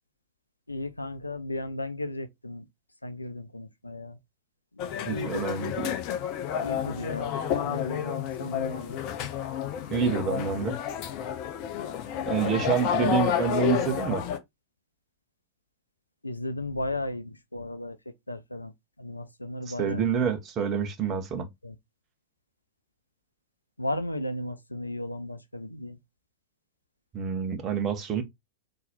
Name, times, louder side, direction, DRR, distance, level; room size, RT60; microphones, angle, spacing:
voice 1, 0.7-2.7 3.0-4.2 4.7-5.5 6.6-9.0 16.2-18.0 18.3-18.7 19.0-20.0 21.6-21.7 23.8-26.0, left 1 dB, 85° left, 0.6 m, -35 dB
sound 1, 4.8-14.4, left 9 dB, 40° left, 0.8 m, -30 dB
voice 2, 5.1-5.9 9.9-10.8 12.3-14.2 19.8-21.5 27.1-28.2, right 7 dB, 30° right, 1.2 m, -27 dB
4.1 x 3.1 x 4.1 m
figure-of-eight pair, 90°, 0 cm